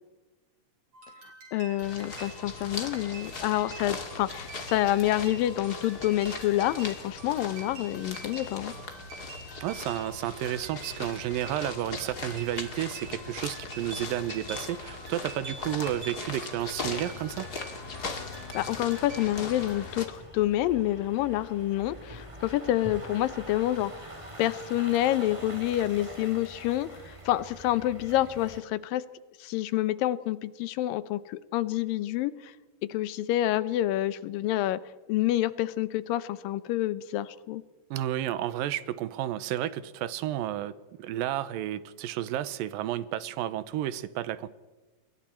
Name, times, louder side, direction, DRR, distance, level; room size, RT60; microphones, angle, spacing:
sound 1, 0.9-19.8, right 3 dB, 50° right, 6.5 m, -47 dB
voice 1, 1.5-8.7 18.5-23.9 24.4-29.0 29.4-32.5 32.9-34.8 35.1-37.6, left 14 dB, 85° left, 15 dB, 2.6 m, -28 dB
sound 2, 1.8-20.1, left 4 dB, 35° left, 2.1 m, -39 dB
voice 2, 9.6-17.5 37.9-44.5, right 12 dB, 90° right, 15 dB, 2.6 m, -32 dB
sound 3, 17.6-28.6, right 1 dB, 10° right, 2.4 m, -45 dB
28.5 x 22.0 x 4.4 m, 1.2 s
omnidirectional pair, 3.9 m